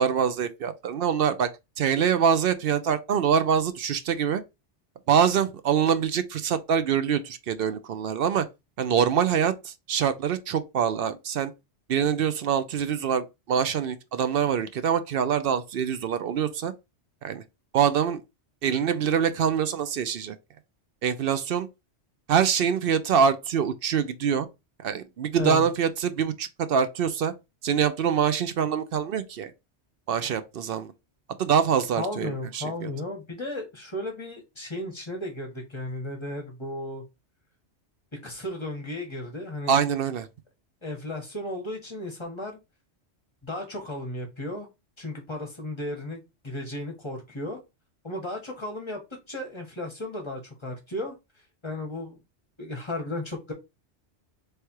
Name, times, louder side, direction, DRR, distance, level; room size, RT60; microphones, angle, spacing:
voice 1, 0.0-1.5 1.8-4.4 5.1-8.4 8.8-11.5 11.9-16.7 17.2-17.4 17.7-18.2 18.6-20.4 21.0-21.7 22.3-24.5 24.8-27.3 27.6-29.5 30.1-30.9 31.4-32.9 39.7-40.3, right 7 dB, 60° right, 0.7 m, -24 dB
voice 2, 32.0-37.0 38.1-39.8 40.8-42.6 43.4-44.7 45.0-47.6 48.0-49.0 49.3-51.1 51.6-52.2 52.6-53.5, left 1 dB, 25° left, 1.4 m, -34 dB
3.4 x 3.3 x 4.5 m
omnidirectional pair, 1.2 m